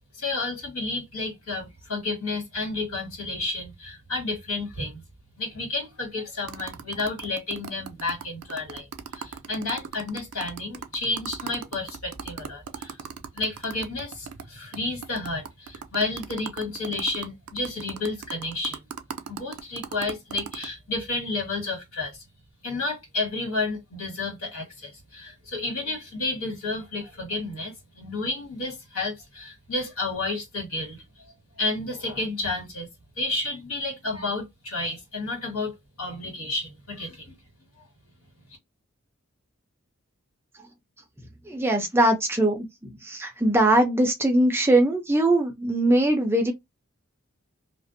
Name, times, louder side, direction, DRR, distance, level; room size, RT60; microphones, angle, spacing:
voice 1, 0.1-5.0 5.4-13.0 13.3-18.8 19.3-22.2 22.6-32.9 33.2-37.3, left 2 dB, 80° left, 1.6 m, -31 dB
sound 1, 6.5-14.4 14.7-14.8 15.0-20.7, right 7 dB, 85° right, 0.4 m, -38 dB
voice 2, 41.4-46.5, right 1 dB, 10° right, 0.5 m, -21 dB
2.5 x 2.1 x 2.6 m
head